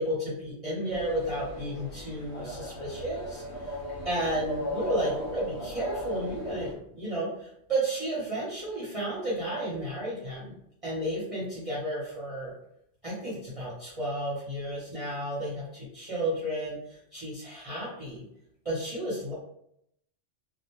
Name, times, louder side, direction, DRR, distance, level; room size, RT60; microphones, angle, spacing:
voice 1, 0.0-3.7 4.0-10.5 10.8-12.5 13.0-18.2 18.6-19.3, right 1 dB, 35° right, -8 dB, 0.8 m, -32 dB
sound 1, 0.9-6.7, left 1 dB, 80° left, 1.0 m, -37 dB
2.4 x 2.1 x 2.9 m, 0.75 s
omnidirectional pair, 1.1 m